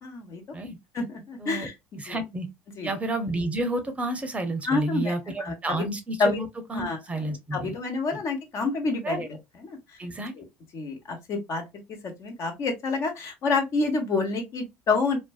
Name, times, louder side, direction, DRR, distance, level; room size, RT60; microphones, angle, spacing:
voice 1, 0.0-0.4 0.9-1.7 2.1-2.2 2.8-2.9 4.7-5.9 6.2-6.4 6.7-7.0 7.5-9.2 9.6-9.8 10.4-10.5 10.7-11.6 12.0-15.2, left 3 dB, 50° left, 1.1 m, -28 dB
voice 2, 2.0-2.5 2.8-7.8 8.1-8.2 9.0-9.3 10.0-10.3, right 2 dB, 20° right, 0.6 m, -30 dB
2.5 x 2.2 x 2.3 m
hypercardioid pair, 75°, 6 cm